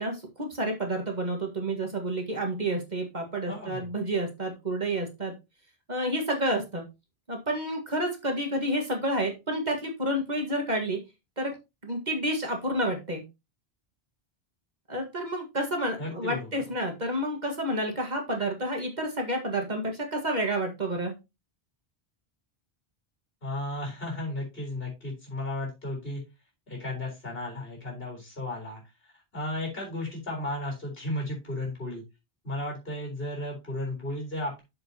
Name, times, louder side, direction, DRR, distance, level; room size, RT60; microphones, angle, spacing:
voice 1, 0.0-5.3 5.9-6.8 7.3-11.0 11.4-11.5 11.8-13.2 14.9-21.1, right 1 dB, 45° right, 2 dB, 1.8 m, -29 dB
voice 2, 3.5-3.9 16.0-16.5 23.4-26.2 26.7-28.8 29.3-32.0 32.4-34.6, left 1 dB, 65° left, 0 dB, 4.3 m, -34 dB
7.8 x 7.1 x 2.8 m, 0.24 s
omnidirectional pair, 1.1 m